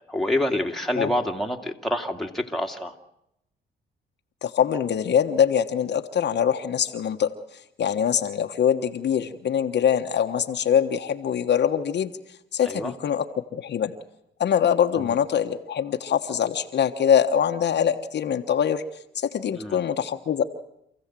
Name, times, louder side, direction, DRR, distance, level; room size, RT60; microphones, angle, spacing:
voice 1, 0.1-2.9 12.6-12.9 15.0-15.1 19.5-19.8, left 1 dB, ahead, 1 dB, 2.2 m, -27 dB
voice 2, 4.4-7.3 7.8-12.1 12.5-13.2 13.5-13.9 14.4-18.8 19.1-20.4, left 8 dB, 60° left, 5 dB, 1.3 m, -23 dB
27.5 x 15.5 x 7.6 m, 0.81 s
cardioid pair, 90°, 20 cm